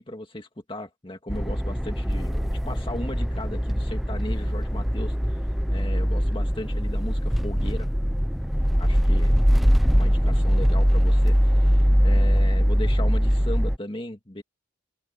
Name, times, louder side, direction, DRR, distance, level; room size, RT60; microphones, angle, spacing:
voice 1, 0.0-5.4 5.7-7.9 8.8-9.4 9.9-11.4 12.0-14.4, left 1 dB, 25° left, 2.1 m, -36 dB
sound 1, 1.3-13.8, equal, ahead, 0.8 m, -22 dB
open air
head